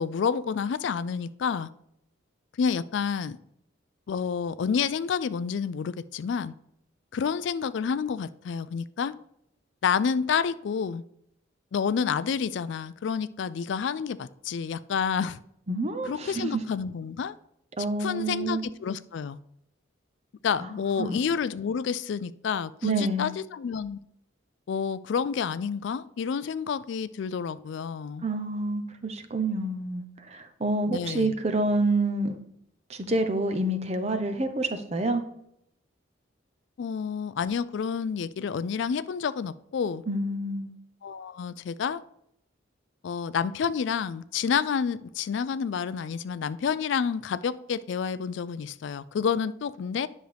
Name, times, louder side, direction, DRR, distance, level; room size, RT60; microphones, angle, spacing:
voice 1, 0.0-1.7 2.6-3.4 4.1-6.5 7.1-9.1 9.8-11.0 11.7-15.4 16.0-17.3 18.0-19.4 20.4-24.0 24.7-28.2 30.9-31.3 36.8-40.0 41.0-42.0 43.0-50.1, left 6 dB, 65° left, 16 dB, 0.3 m, -29 dB
voice 2, 15.7-16.6 17.8-18.6 20.6-20.7 21.0-21.2 22.8-23.3 28.2-32.4 32.9-35.2 40.1-40.7, right 2 dB, 30° right, 7 dB, 0.7 m, -28 dB
10.5 x 6.3 x 3.4 m, 0.75 s
head